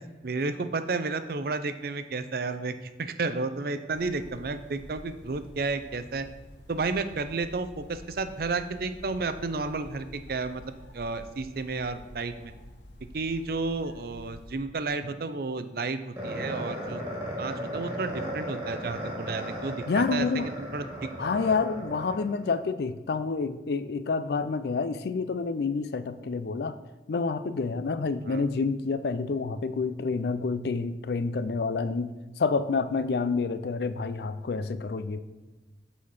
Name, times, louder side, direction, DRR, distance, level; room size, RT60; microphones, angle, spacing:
voice 1, 0.2-2.7 3.0-6.3 6.7-10.6 10.9-12.5 13.1-17.0 17.4-20.3 20.6-20.8 28.3-28.4, right 3 dB, 55° right, 11 dB, 0.5 m, -32 dB
sound 1, 3.9-14.6, left 1 dB, 85° left, 1.0 m, -49 dB
sound 2, 16.2-22.6, equal, 15° right, 2.0 m, -36 dB
voice 2, 19.9-20.5 21.2-26.7 27.1-35.2, left 4 dB, 60° left, 13 dB, 0.4 m, -28 dB
7.6 x 4.3 x 5.4 m, 1.2 s
head